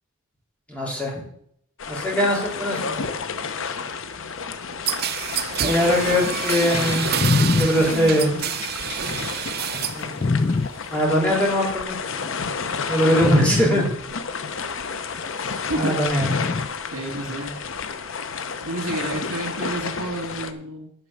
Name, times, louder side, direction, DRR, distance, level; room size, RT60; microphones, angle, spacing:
voice 1, 0.7-1.2 1.9-2.8 5.6-7.1 7.6-8.3 10.0-10.1 10.9-12.0 12.9-13.9 15.7-16.3, equal, 5° left, -4 dB, 4.0 m, -21 dB
sound 1, 1.8-20.5, left 5 dB, 65° left, 0.9 m, -31 dB
sound 2, 4.9-10.1 10.4-11.0, right 9 dB, 50° right, 0.7 m, -28 dB
sound 3, 6.7-10.7 11.6-12.3 12.7-12.9 13.2-13.7 14.8-14.9 16.2-16.7 17.8-17.9, left 3 dB, 30° left, 0.3 m, -24 dB
voice 2, 7.3-8.5 13.0-13.8 15.7-16.5 16.9-17.6 18.6-20.9, right 2 dB, 90° right, 2 dB, 2.4 m, -31 dB
9.8 x 6.0 x 7.2 m, 0.69 s
head